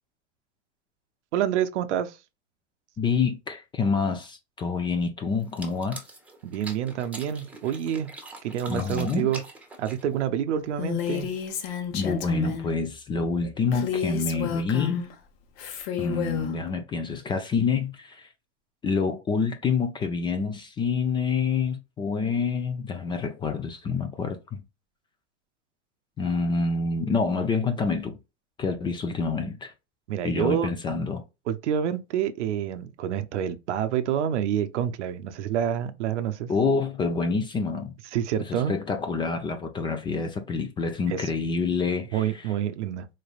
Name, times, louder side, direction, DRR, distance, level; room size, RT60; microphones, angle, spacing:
voice 1, 1.3-2.2 6.4-8.1 8.4-9.4 9.8-11.3 30.1-30.7 31.5-36.5 38.1-38.7 41.1-41.3 42.1-43.1, right 9 dB, 80° right, 0.7 m, -27 dB
voice 2, 3.0-6.0 8.7-9.3 11.9-15.1 16.0-18.3 18.8-24.6 26.2-28.2 28.6-29.7 30.2-31.2 36.5-37.9 38.4-42.5, left 4 dB, 15° left, 0.4 m, -27 dB
sound 1, 5.4-10.3, right 2 dB, 5° right, 1.0 m, -43 dB
Female speech woman speaking, 10.8-12.7 13.7-15.1 15.6-16.5, left 9 dB, 60° left, 1.1 m, -31 dB
4.0 x 3.3 x 2.3 m
hypercardioid pair, 125°, 35 cm